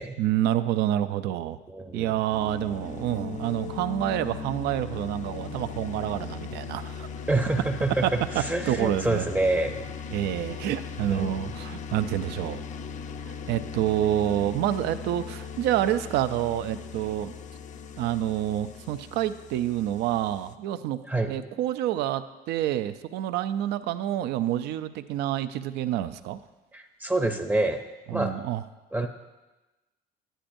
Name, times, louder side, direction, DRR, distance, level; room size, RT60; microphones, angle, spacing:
voice 1, 0.2-1.6 1.9-7.1 8.0-9.3 10.1-12.6 13.5-17.3 18.0-21.0 21.3-26.4 28.1-28.6, right 12 dB, 85° right, 11 dB, 0.4 m, -28 dB
voice 2, 1.7-2.1 7.3-8.1 8.4-9.9 11.1-11.4 21.1-21.3 26.7-27.8 28.1-28.3 28.9-29.1, right 2 dB, 10° right, 5 dB, 0.6 m, -27 dB
sound 1, 2.3-20.6, left 5 dB, 45° left, 0.4 m, -38 dB
10.0 x 9.9 x 2.6 m, 1.1 s
cardioid pair, 110°, 17 cm